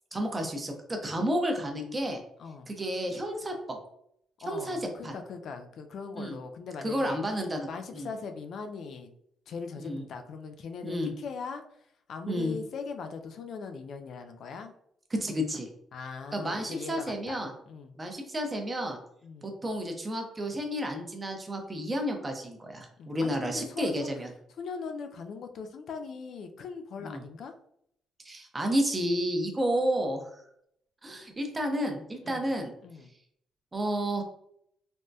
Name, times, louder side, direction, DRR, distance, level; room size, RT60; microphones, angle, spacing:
voice 1, 0.1-2.2 2.7-3.8 4.5-4.8 5.0-5.1 6.2-6.4 6.8-8.1 9.8-10.0 10.8-11.1 12.3-12.6 15.1-15.7 16.3-17.5 18.0-19.0 19.4-24.3 27.0-27.2 28.2-30.4 31.0-32.7 33.7-34.2, equal, 25° right, 3 dB, 0.6 m, -31 dB
voice 2, 2.4-2.7 4.4-7.2 7.7-9.1 9.5-11.6 12.1-14.7 15.9-17.9 19.2-19.5 23.0-24.1 24.6-27.5 32.2-32.4 32.8-33.1, left 5 dB, 65° left, 6 dB, 0.3 m, -40 dB
3.3 x 2.1 x 2.6 m, 0.71 s
cardioid pair, 90°, 0 cm